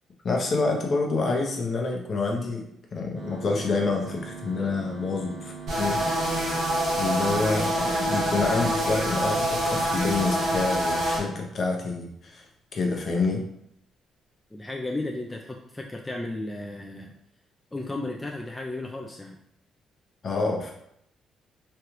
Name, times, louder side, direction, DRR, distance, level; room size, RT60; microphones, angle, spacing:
voice 1, 0.2-2.6 2.9-6.0 7.0-12.5 12.7-13.4 20.2-20.7, left 3 dB, 50° left, 1 dB, 0.7 m, -27 dB
sound 1, 3.1-11.2, right 5 dB, 45° right, 1.2 m, -41 dB
sound 2, 5.7-11.2, right 1 dB, 75° right, 1.3 m, -26 dB
voice 2, 14.5-17.1 17.7-19.4, left 2 dB, 15° left, 0 dB, 0.4 m, -34 dB
3.2 x 2.4 x 3.0 m, 0.74 s
cardioid pair, 90°, 0 cm